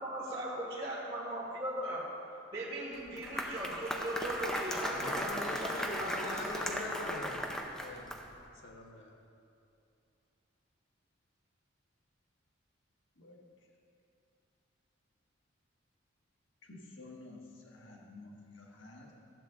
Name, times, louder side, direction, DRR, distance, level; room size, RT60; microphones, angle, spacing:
voice 1, 0.0-2.0 2.5-6.7, right 1 dB, 30° right, -8 dB, 1.6 m, -39 dB
Applause, 2.9-8.4, equal, 5° left, 0.6 m, -37 dB
voice 2, 4.9-7.5 7.8-8.2 8.6-9.1, left 2 dB, 80° left, 0 dB, 1.5 m, -42 dB
voice 3, 16.6-19.1, left 2 dB, 65° left, -1 dB, 1.6 m, -51 dB
14.0 x 8.2 x 3.8 m, 2.6 s
head